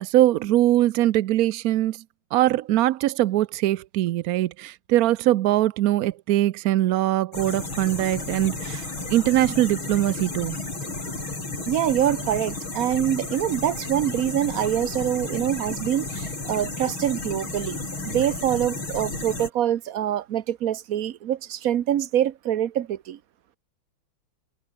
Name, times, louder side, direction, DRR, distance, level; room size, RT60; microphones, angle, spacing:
voice 1, 0.0-2.0 2.3-10.6, right 14 dB, 80° right, 0.8 m, -22 dB
sound 1, 7.3-19.5, left 3 dB, 80° left, 7.8 m, -33 dB
voice 2, 11.7-17.8 18.0-23.2, right 11 dB, 55° right, 1.1 m, -25 dB
omnidirectional pair, 2.2 m